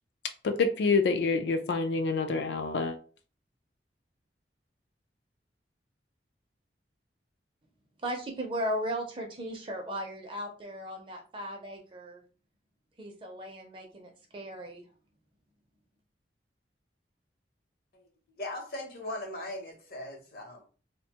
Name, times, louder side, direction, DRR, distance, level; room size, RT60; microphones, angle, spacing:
voice 1, 0.4-3.0, left 4 dB, 75° left, 0.4 m, -27 dB
voice 2, 8.0-12.2 13.0-14.8, equal, 30° right, 0.5 m, -36 dB
voice 3, 18.4-20.6, left 1 dB, 55° left, 0.7 m, -39 dB
2.5 x 2.2 x 2.8 m
head